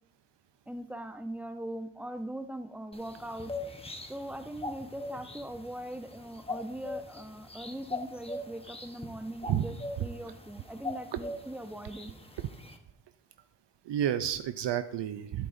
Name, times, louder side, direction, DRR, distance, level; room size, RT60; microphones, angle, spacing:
voice 1, 0.7-3.5 4.1-12.1, right 1 dB, 5° right, 8 dB, 0.8 m, -40 dB
sound 1, 2.9-12.8, left 2 dB, 10° left, 1.1 m, -42 dB
voice 2, 13.8-15.5, right 10 dB, 60° right, 10 dB, 0.6 m, -30 dB
11.5 x 9.3 x 2.7 m, 0.73 s
cardioid pair, 65°, 47 cm